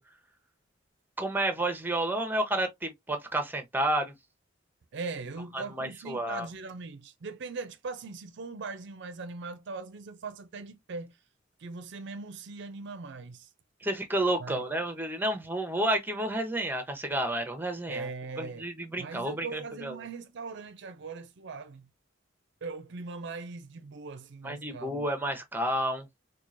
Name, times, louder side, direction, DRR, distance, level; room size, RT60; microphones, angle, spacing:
voice 1, 1.2-4.1 5.5-6.5 13.8-18.1 18.4-20.0 24.4-26.1, right 1 dB, 10° right, 0.8 m, -30 dB
voice 2, 4.9-11.2 11.6-13.5 14.4-14.6 17.9-18.7 19.0-21.9 22.6-25.1, right 4 dB, 65° right, 0.5 m, -40 dB
4.5 x 2.3 x 2.5 m
head